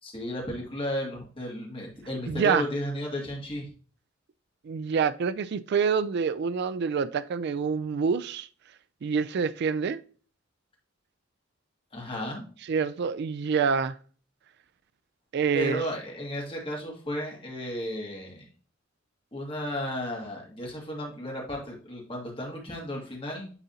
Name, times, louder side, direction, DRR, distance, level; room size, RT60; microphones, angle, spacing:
voice 1, 0.0-3.7 11.9-12.5 15.5-18.5 19.3-23.5, equal, 25° left, 2.2 m, -34 dB
voice 2, 2.3-2.7 4.6-8.5 9.0-10.0 12.6-14.0 15.3-15.8, right 6 dB, 55° right, 0.4 m, -26 dB
9.9 x 4.0 x 2.8 m
head